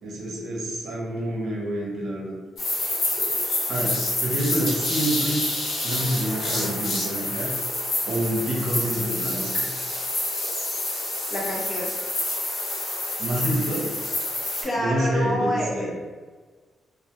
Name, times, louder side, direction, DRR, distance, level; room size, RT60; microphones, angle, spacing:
voice 1, 0.0-2.3 2.8-2.9 3.7-5.5 5.8-7.5 8.1-9.7 13.2-13.9 14.7-16.0, right 1 dB, 70° right, -3 dB, 0.6 m, -27 dB
sound 1, 2.6-14.6, left 2 dB, 55° left, 0.8 m, -28 dB
voice 2, 11.3-11.9 14.6-16.0, equal, 20° left, -2 dB, 0.4 m, -27 dB
2.1 x 2.0 x 2.8 m, 1.4 s
wide cardioid pair, 175°, 0 cm